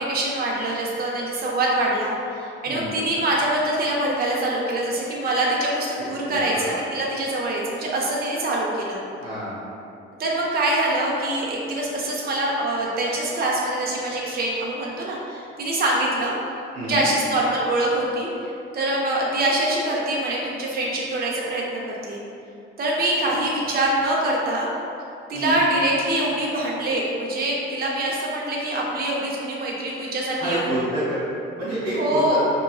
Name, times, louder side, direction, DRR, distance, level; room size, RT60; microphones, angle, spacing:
voice 1, 0.0-9.0 10.2-16.3 16.9-22.2 22.8-24.7 25.3-30.7 31.9-32.5, right 1 dB, 30° right, -3 dB, 0.6 m, -24 dB
voice 2, 6.0-6.8 9.2-9.6 16.7-17.0 25.3-25.6 30.4-31.2 31.6-32.4, equal, 90° right, -11 dB, 1.2 m, -28 dB
3.7 x 2.4 x 2.3 m, 2.6 s
hypercardioid pair, 45°, 29 cm